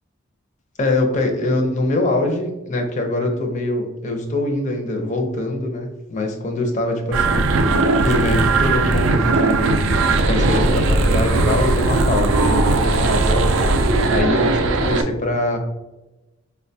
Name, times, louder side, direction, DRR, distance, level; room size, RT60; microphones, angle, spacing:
voice 1, 0.8-13.5 13.8-15.6, left 2 dB, 35° left, 3 dB, 0.5 m, -23 dB
sound 1, 7.1-15.0, right 3 dB, 70° right, 0.3 m, -18 dB
4.5 x 2.2 x 2.6 m, 1.0 s
head